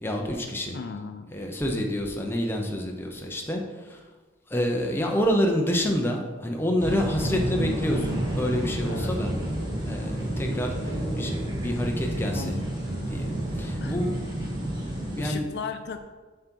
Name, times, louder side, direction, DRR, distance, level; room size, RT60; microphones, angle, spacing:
voice 1, 0.0-0.8 1.3-4.0 4.5-9.3 9.8-12.5 13.1-15.5, equal, 10° left, 1 dB, 0.7 m, -28 dB
voice 2, 0.7-1.3 8.8-9.1 12.3-12.7 13.8-14.0 15.2-16.0, left 5 dB, 60° left, 8 dB, 0.4 m, -36 dB
sound 1, 6.8-15.3, right 1 dB, 20° right, 1.4 m, -30 dB
7.3 x 3.9 x 4.5 m, 1.3 s
head